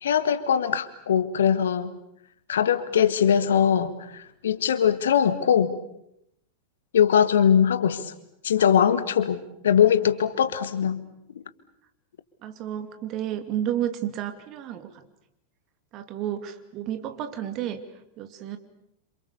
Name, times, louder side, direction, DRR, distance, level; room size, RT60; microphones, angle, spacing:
voice 1, 0.0-1.9 2.5-5.8 6.9-8.1 8.4-11.0 11.3-11.4, left 8 dB, 65° left, 12 dB, 1.7 m, -21 dB
voice 2, 12.4-14.9 15.9-17.8 18.2-18.6, right 11 dB, 35° right, 8 dB, 2.7 m, -31 dB
28.0 x 27.5 x 6.9 m, 0.79 s
figure-of-eight pair, 90°, 0 cm